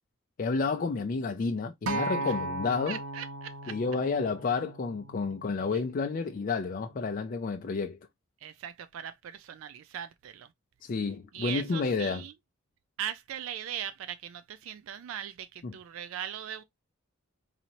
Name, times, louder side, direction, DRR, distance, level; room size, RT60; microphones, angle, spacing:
voice 1, 0.4-3.0 3.7-8.0 10.8-12.2 15.6-15.7, left 4 dB, 40° left, 0.4 m, -30 dB
Acoustic guitar, 1.9-6.1 6.9-7.1, right 2 dB, 90° right, 0.7 m, -37 dB
voice 2, 2.9-3.8 5.7-5.8 8.4-10.5 11.3-12.3 13.0-16.6, right 9 dB, 70° right, 0.3 m, -39 dB
4.1 x 2.7 x 2.8 m
head